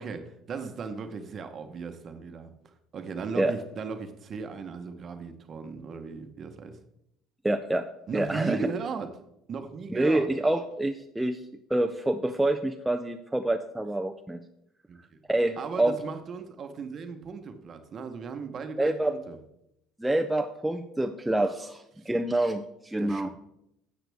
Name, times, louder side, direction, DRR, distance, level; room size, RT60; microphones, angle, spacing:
voice 1, 0.0-2.5 2.9-6.8 8.1-9.1 9.5-10.3 14.9-15.2 15.6-19.4 22.0-22.1 23.0-23.3, right 5 dB, 30° right, 8 dB, 0.9 m, -37 dB
voice 2, 7.4-7.9 8.1-8.7 9.9-11.4 11.7-14.4 15.3-16.0 18.8-19.1 20.0-23.3, right 1 dB, 5° right, 5 dB, 0.4 m, -27 dB
12.5 x 7.9 x 3.4 m, 0.80 s
cardioid pair, 160°, 0 cm